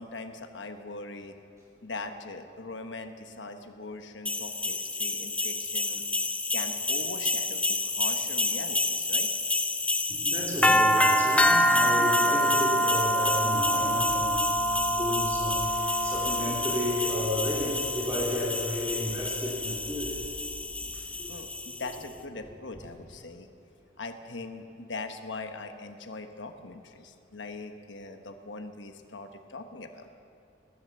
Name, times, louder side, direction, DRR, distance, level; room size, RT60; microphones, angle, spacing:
voice 1, 0.0-1.4 1.8-6.0 6.5-9.3 21.3-23.5 24.0-30.1, left 3 dB, 75° left, 7 dB, 1.2 m, -41 dB
sound 1, 4.3-22.0, left 1 dB, 5° left, 0.5 m, -27 dB
voice 2, 10.1-20.2 20.9-21.4, left 1 dB, 15° right, -4 dB, 2.6 m, -33 dB
sound 2, 13.1-21.1, equal, 20° left, 3.8 m, -48 dB
19.0 x 11.0 x 6.9 m, 2.5 s
head